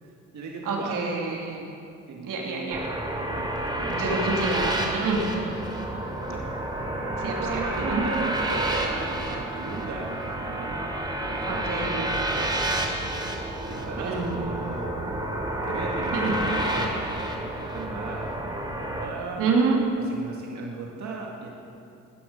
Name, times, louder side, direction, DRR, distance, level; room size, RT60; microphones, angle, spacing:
voice 1, 0.0-1.0 2.1-2.9 3.4-4.5 5.1-6.0 6.3-6.5 6.8-14.9 15.5-17.2 17.6-19.5 20.1-21.5, right 4 dB, 60° right, -2 dB, 2.0 m, -38 dB
voice 2, 0.6-1.6 2.2-2.8 3.9-5.2 7.2-8.0 11.5-12.2 14.1-14.4 16.1-16.3 19.4-19.8, right 4 dB, 85° right, -1 dB, 2.7 m, -27 dB
sound 1, 2.7-19.1, right 1 dB, 15° right, 2.7 m, -29 dB
19.5 x 10.0 x 5.2 m, 2.5 s
cardioid pair, 75°, 32 cm